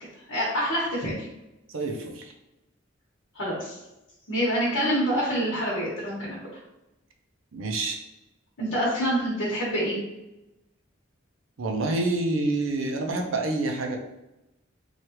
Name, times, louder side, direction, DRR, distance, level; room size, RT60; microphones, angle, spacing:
voice 1, 0.3-1.3 3.3-3.8 4.3-6.4 8.6-10.0, equal, 80° left, -6 dB, 1.0 m, -26 dB
voice 2, 1.7-2.3 7.5-8.0 11.6-14.0, right 2 dB, 85° right, 3 dB, 0.5 m, -27 dB
3.1 x 2.4 x 2.9 m, 0.95 s
head